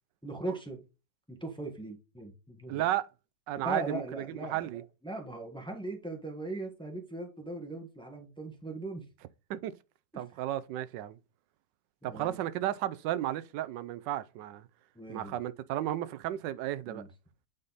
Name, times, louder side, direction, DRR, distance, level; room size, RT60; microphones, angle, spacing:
voice 1, 0.2-0.8 1.3-2.8 3.6-9.1 10.1-10.2 12.0-12.4 14.9-15.4 16.9-17.1, right 2 dB, 5° left, 1.2 m, -39 dB
voice 2, 2.7-3.1 3.5-4.8 9.5-9.8 10.1-11.2 12.0-14.7 15.1-17.0, right 13 dB, 85° right, 1.2 m, -33 dB
8.6 x 4.0 x 4.0 m
omnidirectional pair, 1.9 m